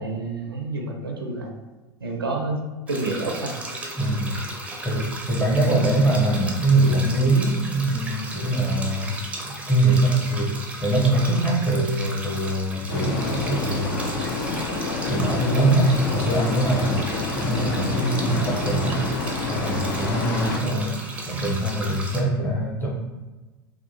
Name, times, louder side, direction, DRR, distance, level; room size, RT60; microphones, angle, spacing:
voice 1, 0.0-1.5 2.0-2.6 2.9-3.5, right 3 dB, 80° right, 1 dB, 0.4 m, -28 dB
sound 1, 2.9-22.2, right 2 dB, 10° right, 0.5 m, -36 dB
voice 2, 4.0-4.3 4.8-9.1 9.4-10.5 10.8-14.0 15.1-17.1 17.3-19.0 19.5-21.0 21.3-22.9, right 2 dB, 15° left, -3 dB, 0.8 m, -22 dB
sound 2, 12.9-20.6, left 3 dB, 60° left, 0.5 m, -28 dB
2.8 x 2.3 x 2.6 m, 1.2 s
figure-of-eight pair, 80°, 12 cm